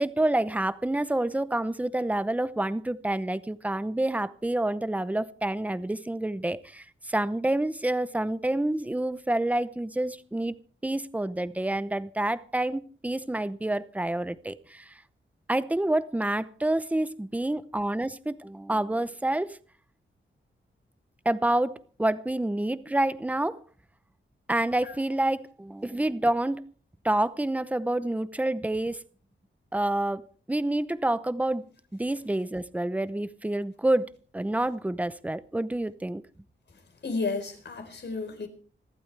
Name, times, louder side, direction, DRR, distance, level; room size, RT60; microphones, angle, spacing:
voice 1, 0.0-10.5 10.8-14.9 15.5-19.6 21.2-23.6 24.5-26.7 27.0-29.0 29.7-31.6 31.9-36.2, right 1 dB, 5° right, 0.7 m, -28 dB
voice 2, 37.0-38.5, left 3 dB, 60° left, 4.3 m, -32 dB
27.0 x 12.5 x 3.3 m
wide cardioid pair, 175°, 21 cm